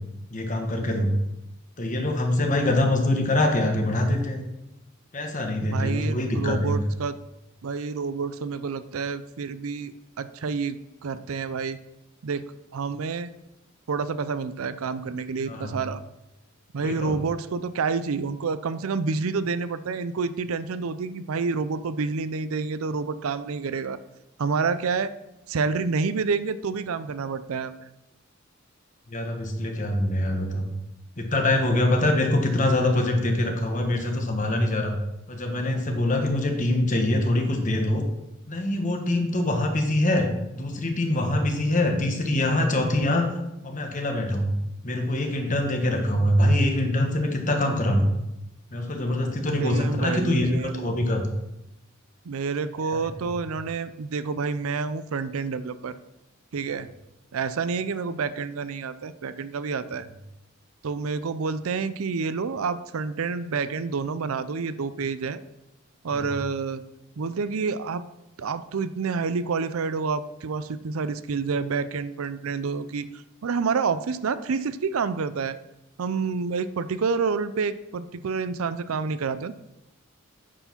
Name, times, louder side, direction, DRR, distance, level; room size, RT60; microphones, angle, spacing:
voice 1, 0.3-1.1 1.8-4.4 5.1-6.8 15.4-15.8 16.8-17.2 29.1-30.7 31.2-34.9 35.3-38.0 38.5-40.3 40.5-43.3 43.6-44.5 44.8-48.1 48.7-51.3 52.9-53.3 66.1-66.3, left 1 dB, 35° left, 3 dB, 1.3 m, -24 dB
voice 2, 5.6-7.2 7.6-11.8 12.2-12.4 12.7-13.3 13.9-16.0 16.7-24.0 24.4-25.1 25.5-27.9 49.6-50.9 52.3-56.0 56.5-56.9 57.3-60.1 60.8-65.4 66.0-66.8 67.2-68.0 68.4-75.6 76.0-79.5, right 5 dB, 85° right, 14 dB, 0.5 m, -28 dB
8.8 x 4.8 x 5.8 m, 0.91 s
head